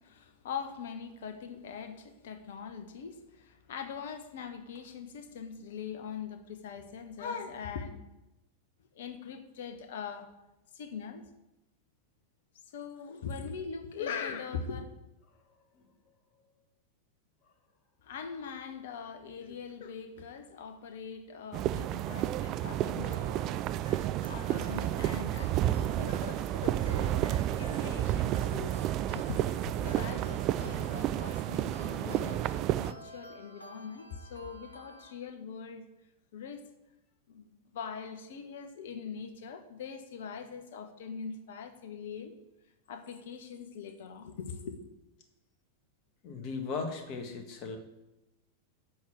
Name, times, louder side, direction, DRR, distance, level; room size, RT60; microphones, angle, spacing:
voice 1, 0.0-7.9 8.9-10.3 10.7-11.2 12.7-14.9 18.0-28.9 29.1-35.8 36.3-36.7 37.3-42.3 42.9-44.8, left 6 dB, 55° left, 8 dB, 1.2 m, -42 dB
sound 1, 21.5-32.9, right 13 dB, 35° right, 0.4 m, -31 dB
sound 2, 23.1-35.1, equal, 80° left, 1.1 m, -51 dB
voice 2, 46.2-47.8, left 4 dB, 40° left, 5 dB, 1.8 m, -37 dB
7.8 x 6.4 x 7.3 m, 0.98 s
figure-of-eight pair, 90°, 0 cm